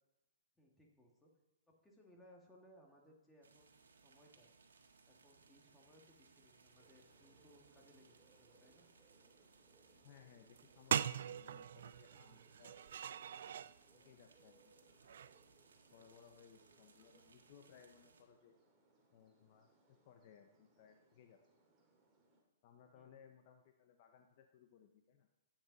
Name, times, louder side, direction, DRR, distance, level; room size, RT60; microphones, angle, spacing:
voice 1, 0.6-1.3 1.7-4.5 5.1-8.9 22.9-23.2, equal, 5° left, -1 dB, 2.3 m, -66 dB
sound 1, 3.4-18.2, right 4 dB, 90° right, 1.7 m, -68 dB
sound 2, 6.8-22.4, right 3 dB, 15° right, 2.5 m, -72 dB
voice 2, 10.0-12.8 13.4-15.2 15.9-18.5 19.1-21.4 22.6-25.3, left 8 dB, 45° left, 5 dB, 0.9 m, -64 dB
sound 3, 10.6-10.7 10.9-13.7 15.0-15.4, right 9 dB, 70° right, 0.4 m, -41 dB
14.5 x 9.1 x 4.2 m, 1.0 s
hypercardioid pair, 145°, 0 cm